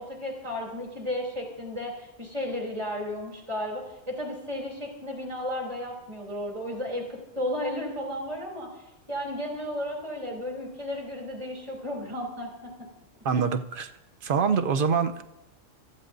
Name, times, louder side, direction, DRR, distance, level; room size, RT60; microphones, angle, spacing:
voice 1, 0.0-8.7 9.1-12.7, left 1 dB, 20° right, -1 dB, 3.1 m, -33 dB
voice 2, 13.2-13.9 14.2-15.2, right 6 dB, 50° right, 8 dB, 0.8 m, -25 dB
26.5 x 14.0 x 2.6 m, 0.93 s
omnidirectional pair, 1.3 m